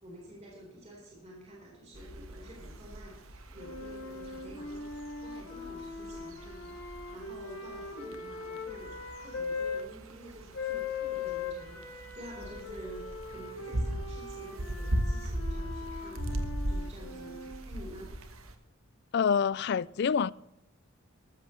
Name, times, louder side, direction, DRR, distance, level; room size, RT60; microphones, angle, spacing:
voice 1, 0.0-8.9 9.2-18.1, equal, 30° right, 4.5 m, -49 dB
sound 1, 1.9-18.5, right 1 dB, 80° right, 1.5 m, -39 dB
sound 2, 3.6-9.8 10.5-17.6, left 4 dB, 85° left, 2.7 m, -40 dB
voice 2, 19.1-20.3, left 6 dB, 50° left, 0.3 m, -26 dB
14.5 x 13.5 x 3.3 m
head